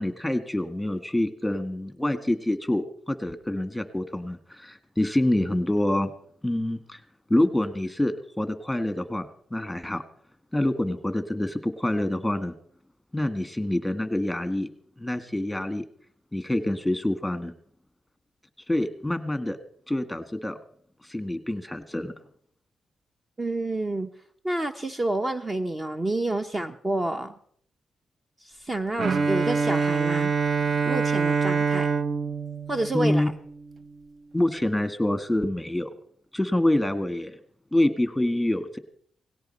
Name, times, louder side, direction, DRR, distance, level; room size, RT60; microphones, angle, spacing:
voice 1, 0.0-6.1 6.4-7.0 7.3-10.0 10.5-12.5 13.1-14.7 15.0-15.8 16.3-17.5 18.7-19.6 19.9-20.6 21.0-22.1 32.9-33.3 34.3-35.9 36.3-37.4 37.7-38.8, left 1 dB, 5° left, 10 dB, 1.6 m, -26 dB
voice 2, 23.4-24.1 24.4-27.3 28.4-30.3 30.9-31.9 32.7-33.3, right 2 dB, 25° right, 7 dB, 0.9 m, -28 dB
Bowed string instrument, 29.0-33.8, right 5 dB, 50° right, 0.7 m, -25 dB
18.5 x 16.5 x 4.4 m, 0.63 s
cardioid pair, 90°, 0 cm